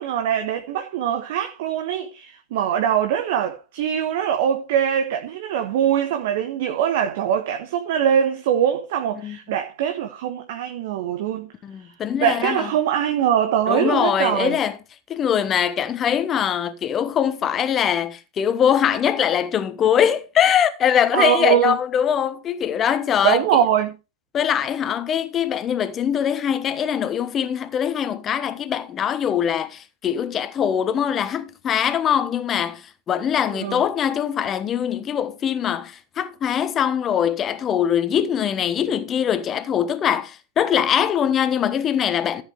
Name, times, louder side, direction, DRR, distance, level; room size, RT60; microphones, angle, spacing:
voice 1, 0.0-11.5 11.8-11.9 12.2-14.6 21.1-21.8 23.2-23.9 33.5-33.8, right 9 dB, 50° right, 1.3 m, -22 dB
voice 2, 11.6-12.7 13.7-14.8 15.1-23.6 24.3-42.4, left 9 dB, 25° left, 1.3 m, -22 dB
14.0 x 8.1 x 3.4 m
figure-of-eight pair, 90°, 0 cm